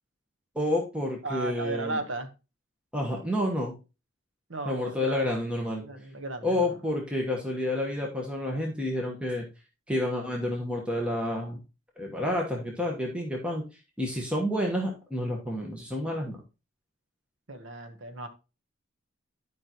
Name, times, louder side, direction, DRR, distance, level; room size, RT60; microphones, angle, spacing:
voice 1, 0.5-2.0 2.9-3.7 4.6-5.8 6.4-9.5 9.9-11.6 12.0-13.6 14.0-16.4, left 1 dB, 5° right, 1.2 m, -29 dB
voice 2, 1.2-2.3 4.5-5.2 5.8-6.6 17.5-18.3, right 2 dB, 65° right, 1.2 m, -35 dB
10.5 x 5.3 x 3.0 m
head